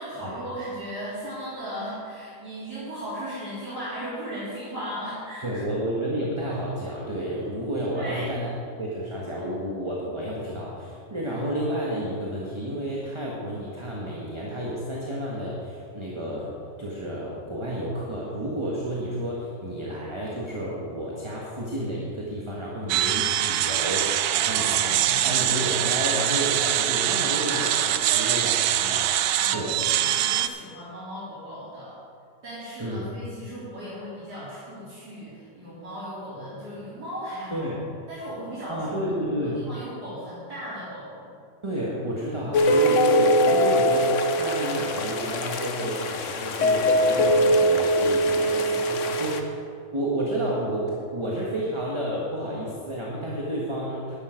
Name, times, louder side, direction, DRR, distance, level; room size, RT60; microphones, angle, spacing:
voice 1, 0.0-5.5 7.9-8.3 24.3-25.9 27.4-28.3 29.4-32.0 32.4-37.7 38.1-39.1 39.4-41.3 48.3-48.8, equal, 65° right, -12 dB, 4.0 m, -37 dB
voice 2, 5.4-8.5 8.8-16.5 16.8-29.1 29.5-29.8 32.8-33.1 37.5-37.9 38.7-39.6 41.6-49.5 49.9-54.2, equal, 20° right, -4 dB, 1.4 m, -31 dB
sound 1, 22.9-30.5, right 12 dB, 85° right, 1.2 m, -24 dB
sound 2, 42.5-49.4, equal, 55° left, 1.0 m, -22 dB
11.0 x 10.5 x 5.1 m, 2.4 s
omnidirectional pair, 1.9 m